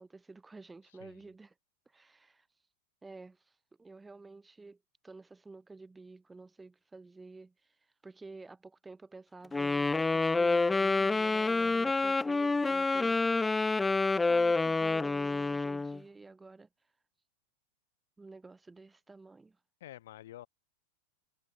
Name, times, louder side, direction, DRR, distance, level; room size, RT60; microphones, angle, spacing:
voice 1, 0.0-1.5 1.9-2.5 3.0-4.8 5.0-7.8 8.0-13.5 14.3-16.7 18.2-19.6, right 3 dB, 10° right, 5.7 m, -51 dB
Wind instrument woodwind instrument, 9.5-16.0, left 3 dB, 10° left, 0.6 m, -28 dB
voice 2, 11.6-12.1 19.8-20.5, left 13 dB, 55° left, 6.4 m, -50 dB
figure-of-eight pair, 90°, 0 cm